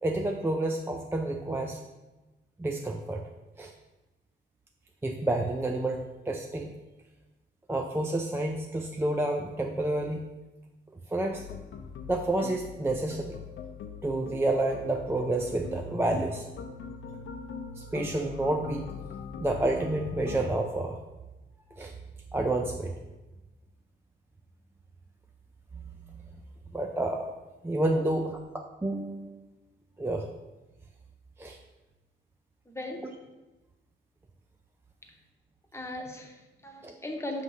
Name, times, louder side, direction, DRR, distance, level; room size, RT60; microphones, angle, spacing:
voice 1, 0.0-1.8 2.6-3.2 3.6-3.7 5.0-6.7 7.7-10.3 11.1-11.5 12.1-13.4 14.0-16.4 17.8-18.9 19.4-21.0 21.8-21.9 22.3-22.9 26.7-27.3 27.6-29.4 30.0-30.3 31.4-31.6 36.8-36.9, right 2 dB, 10° right, 2 dB, 0.4 m, -29 dB
sound 1, 11.3-20.4, left 5 dB, 75° left, 0.6 m, -42 dB
voice 2, 32.7-33.2 35.7-37.4, left 1 dB, 15° left, 3 dB, 0.8 m, -38 dB
6.3 x 3.3 x 5.4 m, 1.1 s
cardioid pair, 120°, 20 cm